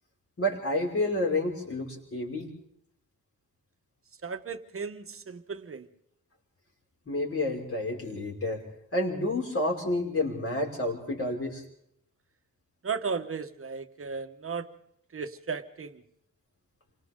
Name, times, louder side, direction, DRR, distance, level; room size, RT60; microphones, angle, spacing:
voice 1, 0.4-2.5 7.1-8.6 8.9-11.6, left 1 dB, 45° left, -1 dB, 5.9 m, -29 dB
voice 2, 4.2-5.9 12.8-14.7 15.1-16.0, right 5 dB, 45° right, 9 dB, 1.3 m, -35 dB
29.0 x 25.0 x 3.8 m, 0.71 s
wide cardioid pair, 160°, 32 cm